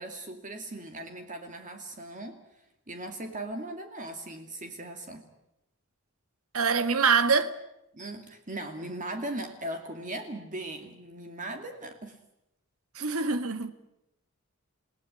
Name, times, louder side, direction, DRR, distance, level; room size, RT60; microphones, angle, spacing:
voice 1, 0.0-2.4 2.9-5.2 7.9-12.2, right 1 dB, 35° right, 2.5 m, -38 dB
voice 2, 6.5-7.5 13.0-13.7, right 5 dB, 80° right, 1.8 m, -24 dB
29.0 x 18.0 x 10.0 m
head